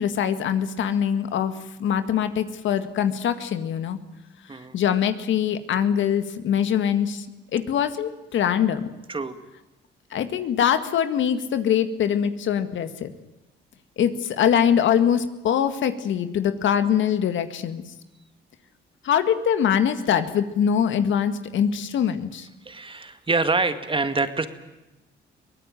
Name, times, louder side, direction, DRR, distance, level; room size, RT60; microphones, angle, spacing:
voice 1, 0.0-1.5 1.8-4.0 4.7-7.3 7.5-8.9 10.1-13.1 14.0-17.8 19.0-22.5, left 8 dB, 75° left, 10 dB, 2.0 m, -23 dB
voice 2, 22.6-24.5, right 3 dB, 25° right, 9 dB, 2.1 m, -25 dB
23.0 x 18.5 x 9.1 m, 1.0 s
cardioid pair, 90°, 20 cm